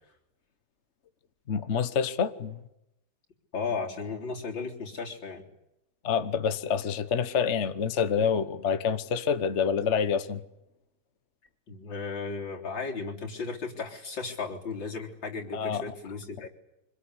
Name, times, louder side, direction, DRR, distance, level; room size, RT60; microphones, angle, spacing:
voice 1, 1.5-2.6 6.0-10.4 15.5-15.8, left 6 dB, 45° left, 1.3 m, -27 dB
voice 2, 3.5-5.4 11.7-16.5, left 4 dB, 85° left, 4.6 m, -35 dB
25.5 x 22.0 x 9.8 m
omnidirectional pair, 2.0 m